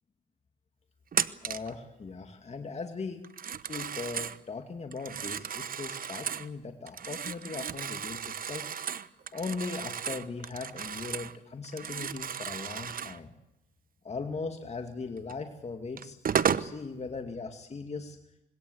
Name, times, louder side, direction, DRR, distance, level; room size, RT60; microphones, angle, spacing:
Telephone, 1.1-1.7 3.2-4.4 4.9-6.5 6.9-11.4 11.6-13.2 15.3-15.4 16.0-16.7, right 7 dB, 45° right, 1.0 m, -34 dB
voice 1, 1.4-3.2 3.6-8.7 9.3-13.3 14.0-18.2, left 4 dB, 35° left, 5 dB, 2.4 m, -39 dB
26.0 x 21.0 x 8.2 m, 0.91 s
cardioid pair, 90°, 20 cm